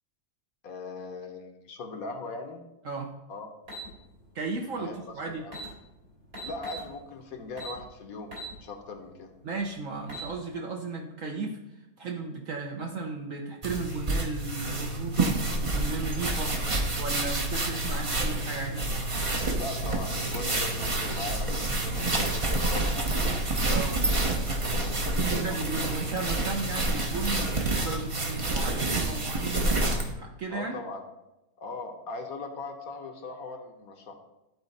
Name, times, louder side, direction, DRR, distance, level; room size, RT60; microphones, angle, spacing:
voice 1, 0.6-2.6 3.3-3.5 4.8-4.9 5.3-5.5 6.4-8.3 8.6-9.3 19.5-23.2 24.7-25.6 30.5-31.0 31.6-34.2, left 3 dB, 65° left, 5 dB, 1.3 m, -39 dB
sound 1, 3.7-3.9 5.1-5.2 5.4-5.7 6.3-6.9 7.6-7.8 8.3-8.5 9.0-9.1 9.9-10.3, left 1 dB, 75° right, 3.7 m, -39 dB
voice 2, 4.3-5.5 9.4-11.6 12.0-16.6 17.0-18.9 23.7-24.0 25.3-29.8 30.2-30.8, right 3 dB, 60° right, 0 dB, 1.1 m, -35 dB
sound 2, 13.6-30.1, right 2 dB, 30° right, 0.6 m, -28 dB
11.5 x 4.2 x 4.1 m, 0.94 s
omnidirectional pair, 1.7 m